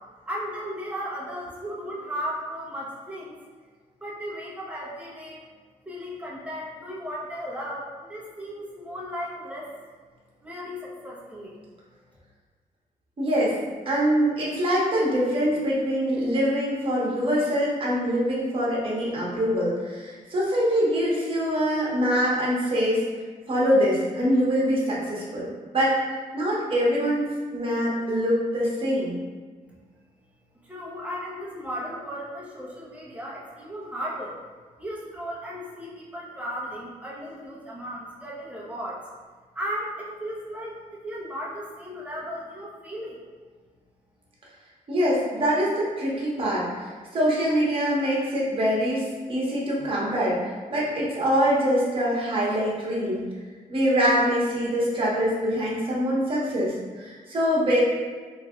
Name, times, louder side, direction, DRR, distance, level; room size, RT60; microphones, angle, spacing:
voice 1, 0.3-3.4 4.0-5.4 5.9-9.7 10.4-11.6 30.6-34.3 34.8-39.0 39.5-43.2, equal, 10° right, -5 dB, 0.9 m, -35 dB
voice 2, 13.2-13.5 13.9-23.0 23.5-25.5 25.7-26.0 26.3-29.1 44.9-50.4 50.7-53.2 53.7-57.8, equal, 40° right, -5 dB, 1.2 m, -24 dB
3.2 x 2.5 x 3.7 m, 1.5 s
cardioid pair, 110°, 15 cm